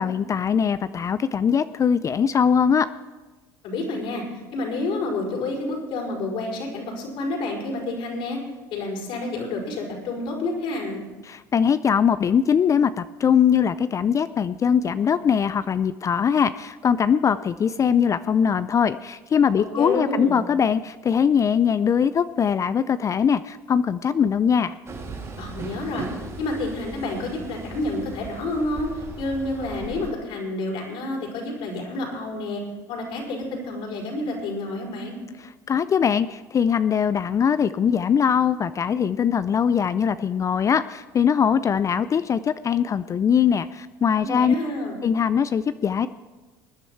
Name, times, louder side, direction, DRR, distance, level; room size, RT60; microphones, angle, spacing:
voice 1, 0.0-2.9 11.3-24.8 35.7-44.5 45.0-46.1, left 7 dB, 35° left, 14 dB, 0.4 m, -21 dB
voice 2, 3.6-8.4 8.7-11.0 19.6-20.4 25.4-26.1 26.4-32.6 32.9-35.2 44.2-45.0, left 2 dB, 65° left, -1 dB, 4.8 m, -29 dB
Train, 24.9-30.1, right 3 dB, 30° right, 4.0 m, -37 dB
21.0 x 10.0 x 4.6 m, 1.2 s
hypercardioid pair, 75°, 10 cm